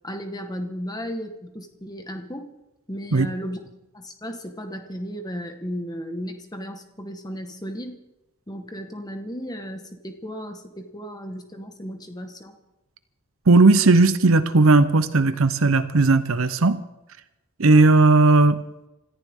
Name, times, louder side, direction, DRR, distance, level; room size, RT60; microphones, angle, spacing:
voice 1, 0.0-2.5 2.9-3.6 3.9-8.0 8.5-12.6, equal, 15° left, 5 dB, 1.4 m, -34 dB
voice 2, 13.5-16.8 17.6-18.6, right 3 dB, 65° right, 12 dB, 0.8 m, -16 dB
26.5 x 14.5 x 3.7 m, 0.96 s
head